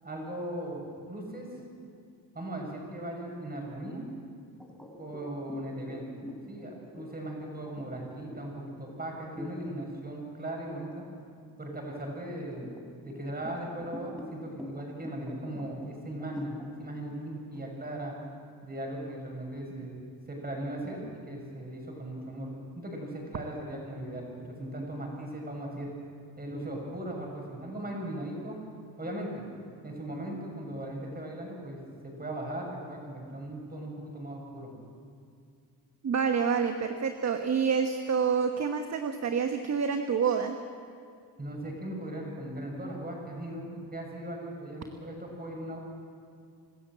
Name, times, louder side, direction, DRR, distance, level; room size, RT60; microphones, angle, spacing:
voice 1, 0.0-1.5 2.3-4.0 5.0-6.1 6.5-11.0 11.6-12.7 13.0-18.1 18.6-22.5 22.8-25.9 26.4-28.6 29.0-29.4 29.8-34.7 41.4-45.8, right 1 dB, 20° right, 0 dB, 6.7 m, -38 dB
sound 1, 4.6-9.7 10.2-10.4 10.9-11.7 12.2-18.9, left 1 dB, ahead, 3.6 m, -45 dB
voice 2, 36.0-40.6, right 6 dB, 40° right, 6 dB, 1.2 m, -27 dB
25.5 x 14.0 x 7.6 m, 2.3 s
cardioid pair, 95°, 41 cm